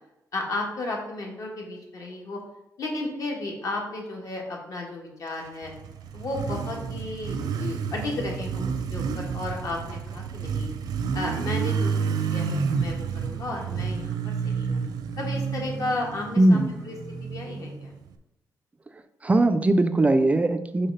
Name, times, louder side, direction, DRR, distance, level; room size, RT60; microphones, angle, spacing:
voice 1, 0.3-2.4 2.8-5.7 6.1-10.7 11.1-14.8 15.2-17.0 17.2-17.9, left 2 dB, 55° left, 0 dB, 1.6 m, -33 dB
Motorcycle, 5.5-18.1, right 6 dB, 85° right, 0.6 m, -30 dB
voice 2, 16.4-16.7 19.2-20.9, right 2 dB, 20° right, 9 dB, 0.4 m, -20 dB
5.7 x 3.4 x 5.4 m, 0.93 s
cardioid pair, 130°, 7 cm